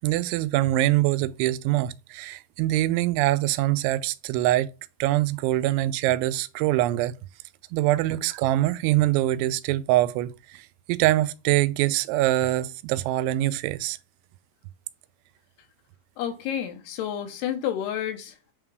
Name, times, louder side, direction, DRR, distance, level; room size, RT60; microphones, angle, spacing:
voice 1, 0.0-4.7 5.0-7.1 7.7-14.0, right 15 dB, 90° right, 2.9 m, -24 dB
voice 2, 16.2-18.5, left 10 dB, 75° left, 2.7 m, -30 dB
8.4 x 3.7 x 4.6 m
omnidirectional pair, 5.2 m